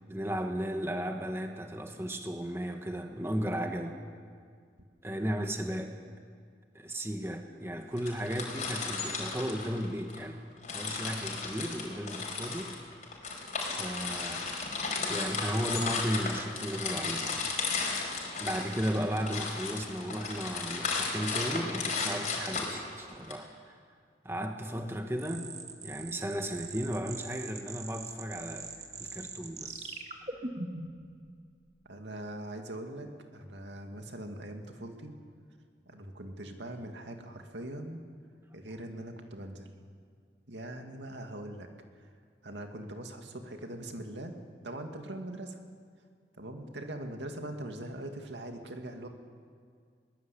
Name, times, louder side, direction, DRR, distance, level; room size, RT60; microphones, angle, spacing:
voice 1, 0.1-4.0 5.0-5.9 6.7-10.4 10.7-12.7 13.6-14.5 15.0-17.5 18.4-23.8 24.2-25.5 25.8-28.7 29.0-30.0, equal, 15° right, 4 dB, 1.4 m, -35 dB
sound 1, 8.0-10.2 10.6-23.3, left 4 dB, 40° left, 5.1 m, -34 dB
sound 2, 25.2-31.0, right 3 dB, 40° right, 2.0 m, -42 dB
voice 2, 31.8-35.1 35.9-38.0 38.5-39.7 40.5-41.7 42.4-44.3 44.6-45.6 46.4-49.1, right 1 dB, 85° right, 4 dB, 2.4 m, -41 dB
22.5 x 20.0 x 8.6 m, 2.1 s
head